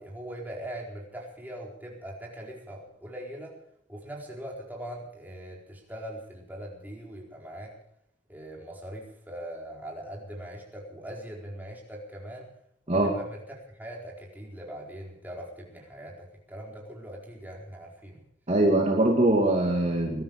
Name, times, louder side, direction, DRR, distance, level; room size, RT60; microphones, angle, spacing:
voice 1, 0.0-3.5 3.9-7.7 8.3-12.5 12.9-18.2, right 1 dB, 10° right, -2 dB, 4.4 m, -41 dB
voice 2, 18.5-20.2, right 1 dB, 35° right, 0 dB, 2.4 m, -22 dB
21.0 x 12.5 x 4.8 m, 0.71 s
head